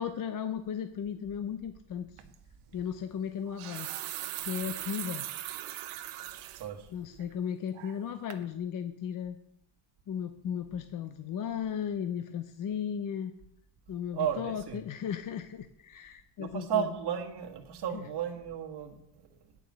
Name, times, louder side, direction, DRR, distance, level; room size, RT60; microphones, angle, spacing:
voice 1, 0.0-2.2 2.7-3.9 4.4-5.3 6.9-9.4 10.1-13.3 13.9-16.9 17.9-18.1, left 8 dB, 40° left, 9 dB, 0.6 m, -35 dB
sound 1, 2.2-2.4 3.4-6.7 7.1-7.2 7.7-8.1 8.3-8.4, right 14 dB, 90° right, 0.9 m, -39 dB
voice 2, 14.1-14.8 16.4-19.0, right 8 dB, 50° right, 3 dB, 1.5 m, -33 dB
8.9 x 5.3 x 7.6 m, 0.77 s
cardioid pair, 130°, 49 cm